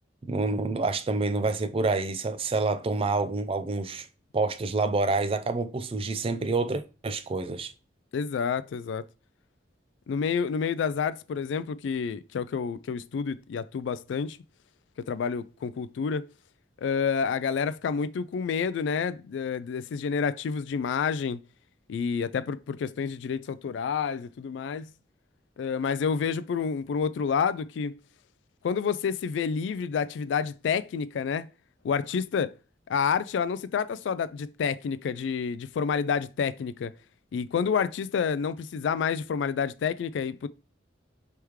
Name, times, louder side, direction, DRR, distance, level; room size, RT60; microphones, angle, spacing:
voice 1, 0.2-4.1 4.3-7.7, right 3 dB, 30° right, 0.4 m, -27 dB
voice 2, 8.1-9.0 10.1-14.4 15.1-16.2 16.8-21.4 21.9-24.9 25.6-27.9 28.6-31.5 31.8-32.5 32.9-36.9 37.3-40.5, left 6 dB, 75° left, 0.3 m, -29 dB
3.5 x 3.2 x 4.6 m
head